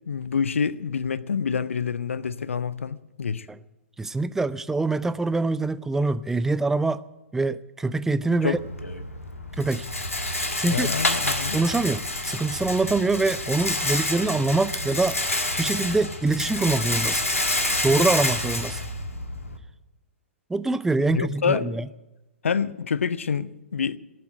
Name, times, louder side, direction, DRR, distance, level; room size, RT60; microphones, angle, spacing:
voice 1, 0.1-3.5 8.3-8.6 10.7-11.6 21.1-21.8 22.4-24.0, left 6 dB, 70° left, 0.6 m, -27 dB
voice 2, 4.0-7.0 7.3-8.6 9.6-9.9 10.3-10.9 11.5-15.2 15.6-17.2 17.8-18.8 20.5-21.9, right 3 dB, 5° right, 0.4 m, -24 dB
Rattle, 8.5-19.6, left 2 dB, 85° left, 1.6 m, -28 dB
17.5 x 7.7 x 9.0 m
figure-of-eight pair, 115°, 7 cm